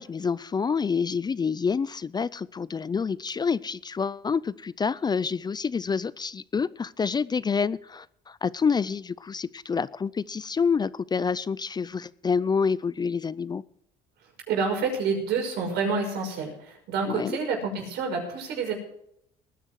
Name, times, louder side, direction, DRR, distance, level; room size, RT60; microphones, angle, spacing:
voice 1, 0.0-13.6 17.1-17.4, left 5 dB, 25° left, 19 dB, 0.5 m, -27 dB
voice 2, 14.5-18.7, right 4 dB, 80° right, 2 dB, 5.9 m, -28 dB
19.5 x 10.0 x 4.7 m, 0.71 s
cardioid pair, 110°, 17 cm